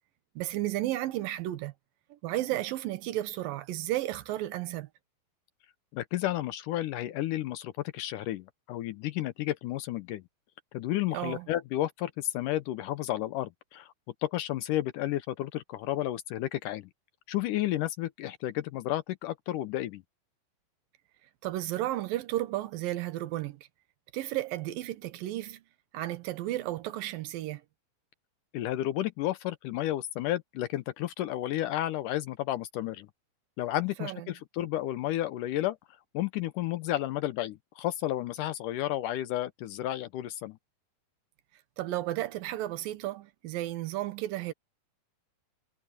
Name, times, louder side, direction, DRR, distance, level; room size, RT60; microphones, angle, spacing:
voice 1, 0.4-1.7 2.1-4.9 11.1-11.5 21.4-23.6 24.1-25.6 25.9-27.6 34.0-34.3 41.8-44.5, right 15 dB, 75° right, 2.7 m, -33 dB
voice 2, 5.9-10.2 10.7-13.9 14.2-16.9 17.3-20.0 28.5-33.1 33.6-35.8 36.1-40.6, left 14 dB, 75° left, 1.9 m, -32 dB
omnidirectional pair, 4.5 m